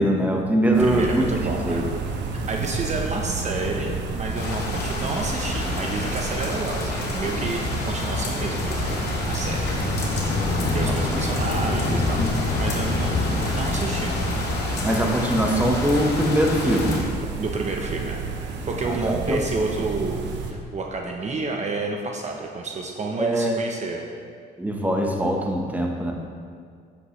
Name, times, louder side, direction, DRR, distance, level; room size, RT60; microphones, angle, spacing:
voice 1, 0.0-1.8 10.8-11.2 14.8-17.0 18.8-19.4 23.2-23.6 24.6-26.1, right 1 dB, 10° right, 1 dB, 1.2 m, -22 dB
sound 1, 0.7-20.5, right 4 dB, 80° right, 1.0 m, -31 dB
voice 2, 0.8-1.8 2.3-9.7 10.7-14.1 17.4-18.2 18.7-24.1, right 3 dB, 40° right, 1 dB, 0.9 m, -30 dB
sound 2, 4.3-17.0, left 3 dB, 65° left, 2.5 m, -27 dB
11.0 x 8.4 x 3.3 m, 2.1 s
cardioid pair, 95°, 18 cm